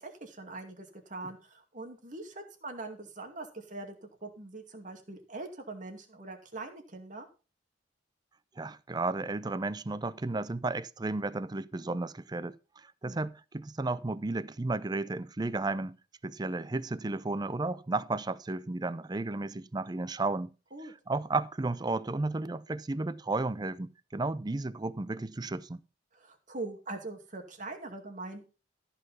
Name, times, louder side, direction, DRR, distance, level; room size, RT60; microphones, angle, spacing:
voice 1, 0.0-7.3 13.0-13.3 20.7-20.9 26.1-28.5, right 2 dB, 45° right, 2.4 m, -42 dB
voice 2, 8.6-16.0 16.2-20.5 21.1-25.8, right 2 dB, 25° right, 0.5 m, -33 dB
14.0 x 5.7 x 5.5 m
head